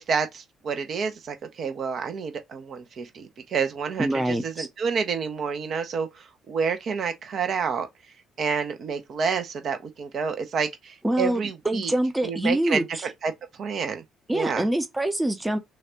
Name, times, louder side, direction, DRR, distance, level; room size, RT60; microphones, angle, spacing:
voice 1, 0.0-7.9 8.4-11.9 12.2-13.3 13.6-14.0 14.3-14.7, right 6 dB, 50° right, 0.9 m, -29 dB
voice 2, 4.0-4.7 11.0-13.1 14.3-15.6, right 1 dB, 15° right, 0.8 m, -25 dB
6.3 x 2.5 x 3.0 m
figure-of-eight pair, 45°, 0 cm